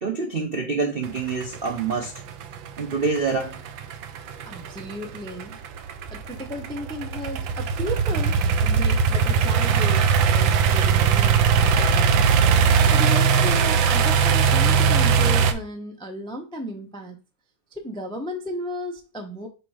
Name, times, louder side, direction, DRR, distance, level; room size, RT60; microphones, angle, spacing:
voice 1, 0.0-2.1 2.8-3.6, right 4 dB, 55° right, 0.6 m, -26 dB
sound 1, 1.0-15.5, right 6 dB, 75° right, 1.4 m, -20 dB
voice 2, 4.5-5.6 6.1-12.3 12.9-17.2 17.7-19.5, equal, 5° left, 0.4 m, -34 dB
7.6 x 2.7 x 4.9 m
omnidirectional pair, 2.2 m